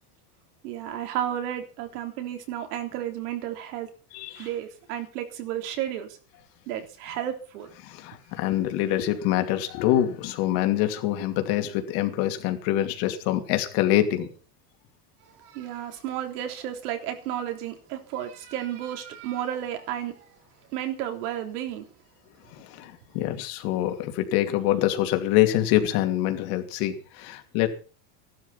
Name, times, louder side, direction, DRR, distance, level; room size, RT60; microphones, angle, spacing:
voice 1, 0.6-3.9 4.4-6.2 6.7-7.7 15.3-20.4 20.7-21.9, right 11 dB, 80° right, 3.6 m, -32 dB
voice 2, 4.1-4.5 7.8-14.3 22.5-27.7, left 13 dB, 55° left, 2.7 m, -25 dB
15.5 x 12.0 x 5.7 m
cardioid pair, 165°, 44 cm